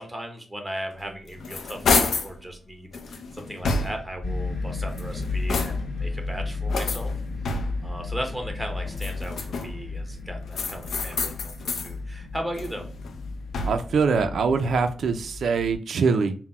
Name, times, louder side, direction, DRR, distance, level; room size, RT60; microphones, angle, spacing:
voice 1, 0.0-7.1 7.8-12.9, equal, 5° right, 3 dB, 0.7 m, -37 dB
sound 1, 1.0-2.4 2.9-4.2 4.8-6.0 6.7-7.9 8.8-9.9 10.5-11.9 12.3-14.0, left 4 dB, 85° left, 0.5 m, -29 dB
sound 2, 4.2-15.7, left 3 dB, 65° left, 1.2 m, -33 dB
voice 2, 13.6-16.4, right 5 dB, 70° right, 8 dB, 0.3 m, -23 dB
3.9 x 2.1 x 4.2 m, 0.40 s
wide cardioid pair, 175°, 0 cm